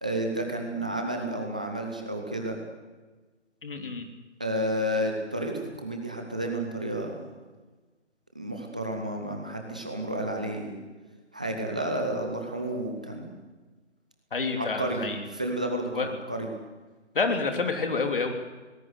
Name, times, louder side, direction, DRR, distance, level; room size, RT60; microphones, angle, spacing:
voice 1, 0.0-2.6 4.4-7.1 8.3-10.7 11.3-13.3 14.6-15.0 15.3-16.5, right 1 dB, 5° right, 2 dB, 0.6 m, -31 dB
voice 2, 3.6-4.1 14.3-15.2 15.9-16.1 17.1-18.3, left 4 dB, 50° left, 5 dB, 3.3 m, -28 dB
24.0 x 19.0 x 8.1 m, 1.3 s
figure-of-eight pair, 155°, 35 cm